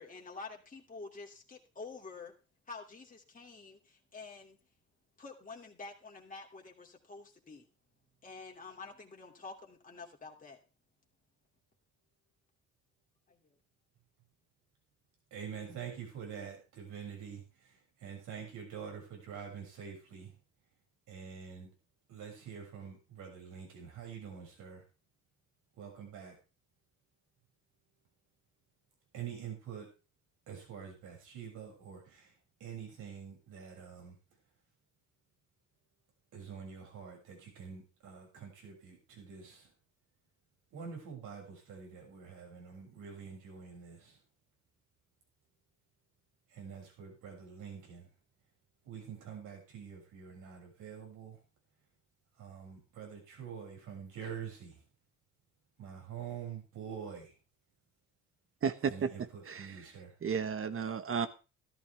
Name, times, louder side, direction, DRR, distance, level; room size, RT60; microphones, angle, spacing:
voice 1, 0.0-2.3 2.7-4.6 5.2-7.7 8.2-10.6 13.3-13.4, left 4 dB, 25° left, 0 dB, 2.8 m, -48 dB
voice 2, 15.3-20.4 21.1-21.7 22.1-24.8 25.7-26.4 29.1-29.9 30.5-34.2 36.3-39.7 40.7-44.2 46.5-48.1 48.8-51.4 52.4-54.8 55.8-57.3 58.8-60.2, right 7 dB, 85° right, 0 dB, 6.9 m, -46 dB
voice 3, 58.6-59.1 59.5-59.7 60.2-61.3, right 6 dB, 45° right, 12 dB, 1.4 m, -33 dB
13.5 x 13.5 x 3.5 m, 0.32 s
cardioid pair, 90°, 30 cm